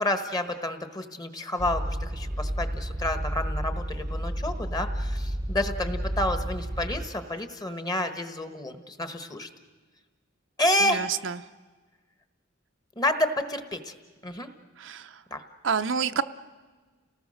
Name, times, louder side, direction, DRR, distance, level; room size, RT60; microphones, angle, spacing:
voice 1, 0.0-9.5 10.6-11.1 13.0-13.9 14.2-14.5 15.3-15.4, left 1 dB, 20° left, 8 dB, 1.3 m, -29 dB
sound 1, 1.6-7.1, equal, 20° right, 0.7 m, -31 dB
voice 2, 10.8-11.3 14.8-15.1 15.6-16.2, right 6 dB, 60° right, 9 dB, 0.6 m, -28 dB
29.5 x 18.5 x 6.5 m, 1.4 s
head